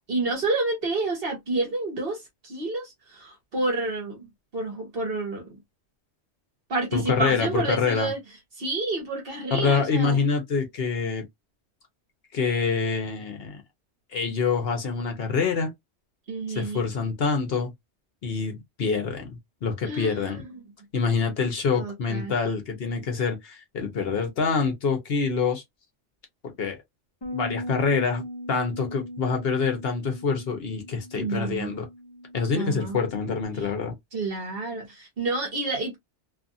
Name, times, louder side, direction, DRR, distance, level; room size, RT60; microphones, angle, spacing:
voice 1, 0.1-5.6 6.7-8.2 8.6-10.2 16.3-16.9 19.8-20.6 21.7-22.3 31.2-31.7 32.5-33.0 34.1-36.0, right 3 dB, 60° right, 1.1 m, -29 dB
voice 2, 6.9-8.1 9.5-11.2 12.3-13.6 14.1-15.7 16.5-17.7 18.2-20.4 20.9-25.6 26.4-26.8 27.3-28.2 28.5-31.9 32.3-33.9, left 5 dB, 60° left, 0.9 m, -26 dB
Bass guitar, 27.2-33.5, equal, 25° left, 0.6 m, -39 dB
2.6 x 2.5 x 2.5 m
omnidirectional pair, 1.2 m